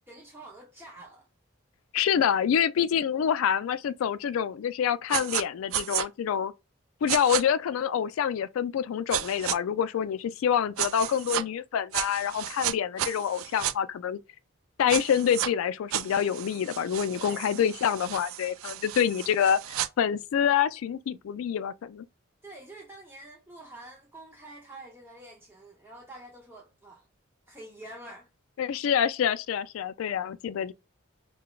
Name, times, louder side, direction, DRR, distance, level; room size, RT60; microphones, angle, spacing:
voice 1, 0.1-1.3 17.2-17.6 22.4-27.1 27.5-28.3, right 1 dB, 10° right, 0.6 m, -47 dB
voice 2, 1.9-6.5 7.0-14.2 14.8-19.6 20.0-22.0 28.6-30.7, left 8 dB, 85° left, 0.3 m, -27 dB
sound 1, 5.1-5.4 5.7-6.1 7.1-7.4 9.1-9.6 10.8-11.4 11.9-13.7 14.9-15.5 15.9-19.9, right 12 dB, 85° right, 0.4 m, -32 dB
5.6 x 2.2 x 2.3 m
head